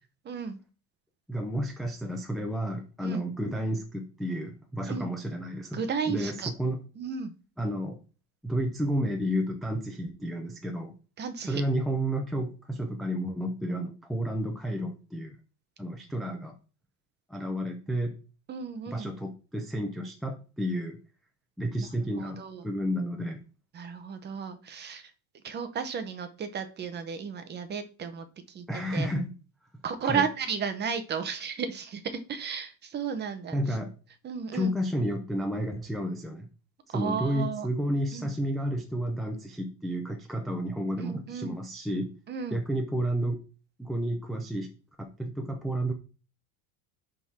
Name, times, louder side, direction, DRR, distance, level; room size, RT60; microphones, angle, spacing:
voice 1, 0.2-0.6 3.0-3.2 4.9-5.1 5.7-6.5 7.0-7.3 11.2-11.6 18.5-19.1 21.8-22.7 23.7-25.1 25.4-29.1 29.8-33.6 34.2-34.7 36.9-37.7 38.1-38.3 41.0-41.5 42.3-42.6, right 6 dB, 25° right, 9 dB, 0.7 m, -34 dB
voice 2, 1.3-5.8 6.1-6.8 7.6-8.0 8.4-10.9 11.4-15.4 15.8-16.6 17.3-18.2 18.9-21.0 21.6-23.4 28.7-29.3 30.0-30.2 33.5-33.9 34.5-36.5 36.9-42.1 42.5-43.4 43.8-44.7 45.0-45.9, equal, ahead, 2 dB, 0.4 m, -31 dB
10.5 x 3.7 x 4.2 m, 0.35 s
cardioid pair, 160°, 45 cm